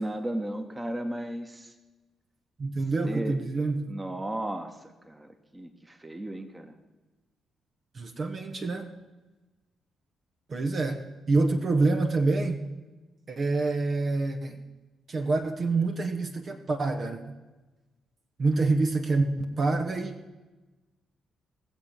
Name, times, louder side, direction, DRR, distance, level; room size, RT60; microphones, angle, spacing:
voice 1, 0.0-1.7 3.0-3.4 3.9-4.8 5.1-6.7, right 1 dB, 20° right, 7 dB, 1.5 m, -34 dB
voice 2, 2.6-3.9 7.9-8.9 10.5-11.0 11.3-12.6 13.3-14.6 15.1-17.2 18.4-20.1, right 3 dB, 45° right, 5 dB, 1.2 m, -26 dB
19.0 x 7.3 x 6.6 m, 1.2 s
hypercardioid pair, 40°, 0 cm